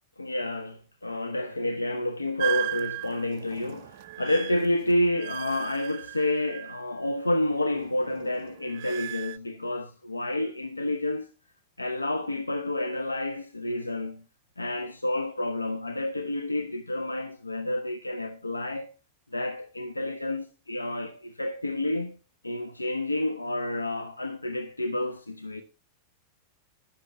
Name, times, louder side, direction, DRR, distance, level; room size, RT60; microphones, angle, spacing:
voice 1, 0.2-11.3 11.8-14.2 14.6-18.9 19.3-22.2 22.4-25.6, left 1 dB, 85° left, 0.8 m, -29 dB
sound 1, 2.4-7.1 7.4-9.4, right 21 dB, 45° right, 0.5 m, -37 dB
13.0 x 10.5 x 3.3 m
figure-of-eight pair, 90°, 0 cm